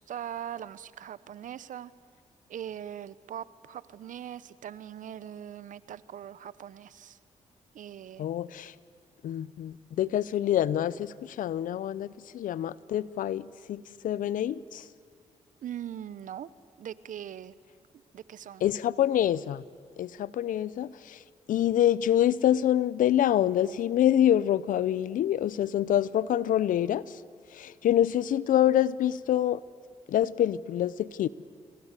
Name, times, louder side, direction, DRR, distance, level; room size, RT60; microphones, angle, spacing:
voice 1, 0.0-1.9 2.5-7.2 7.7-8.3 15.6-16.5 16.8-17.5 18.1-18.6, right 10 dB, 70° right, 18 dB, 0.9 m, -41 dB
voice 2, 8.2-8.7 9.2-14.9 18.6-19.6 20.0-21.2 21.5-27.2 27.5-29.6 30.1-31.3, left 11 dB, 75° left, 19 dB, 0.7 m, -26 dB
28.0 x 24.0 x 8.3 m, 2.1 s
supercardioid pair, 55°, 14 cm